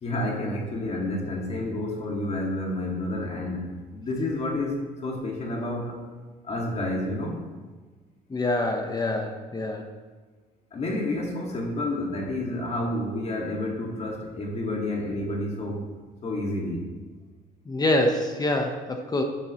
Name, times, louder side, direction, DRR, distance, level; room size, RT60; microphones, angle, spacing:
voice 1, 0.0-6.0 6.4-7.4 10.7-15.9 16.2-16.9, left 1 dB, 40° left, -1 dB, 2.2 m, -30 dB
voice 2, 8.3-9.8 17.7-19.2, left 1 dB, 25° left, 4 dB, 1.1 m, -25 dB
12.5 x 10.0 x 3.1 m, 1.4 s
cardioid pair, 110°, 17 cm